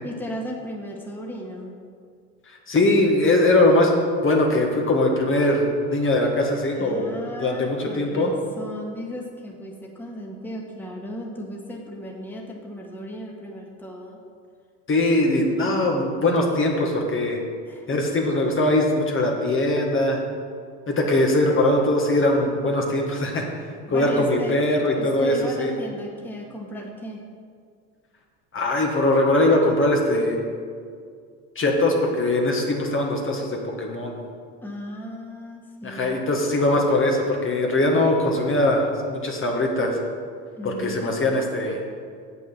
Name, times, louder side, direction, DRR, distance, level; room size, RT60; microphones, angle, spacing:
voice 1, 0.0-1.7 6.7-14.2 17.7-18.0 23.9-24.6 24.9-27.2 34.6-36.1 40.6-41.1, equal, 5° left, -1 dB, 1.7 m, -36 dB
voice 2, 2.4-3.9 4.2-7.0 7.4-8.3 14.9-17.4 17.9-20.2 20.9-23.5 23.9-25.7 28.5-30.4 31.5-34.1 35.8-40.0 40.6-41.8, left 1 dB, 35° left, 0 dB, 1.7 m, -21 dB
7.6 x 6.4 x 7.4 m, 2.1 s
hypercardioid pair, 75°, 37 cm